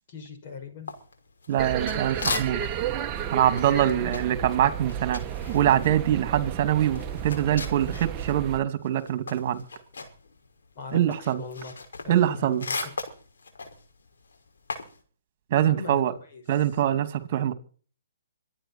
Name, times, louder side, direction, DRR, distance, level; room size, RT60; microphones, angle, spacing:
voice 1, 0.1-0.9 3.8-4.4 7.0-7.3 10.7-12.9 15.6-16.0 16.3-16.4, left 5 dB, 45° left, 6.5 m, -40 dB
sound 1, 0.9-2.9 3.2-8.4 8.7-15.0, left 4 dB, 80° left, 5.7 m, -37 dB
voice 2, 1.5-2.6 3.3-5.2 5.5-9.7 10.9-11.4 12.1-12.7 15.5-16.1 16.5-17.5, right 11 dB, 45° right, 2.5 m, -24 dB
sound 2, 1.6-8.6, right 9 dB, 20° right, 1.2 m, -33 dB
25.0 x 9.9 x 4.4 m
hypercardioid pair, 145°, 0 cm